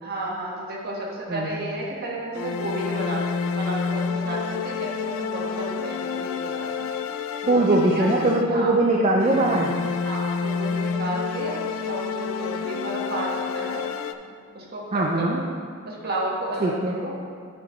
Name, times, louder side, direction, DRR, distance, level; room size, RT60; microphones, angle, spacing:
voice 1, 0.0-6.9 7.4-8.1 8.5-8.7 10.0-13.8 14.5-15.4 15.8-17.1, right 1 dB, 45° right, -3 dB, 1.5 m, -32 dB
voice 2, 1.3-1.6 7.5-9.7 14.9-15.4 16.6-17.0, right 2 dB, 30° right, -1 dB, 0.5 m, -21 dB
sound 1, 2.3-8.8 9.2-14.1, left 5 dB, 65° left, 0.4 m, -29 dB
10.0 x 6.1 x 3.1 m, 2.2 s
head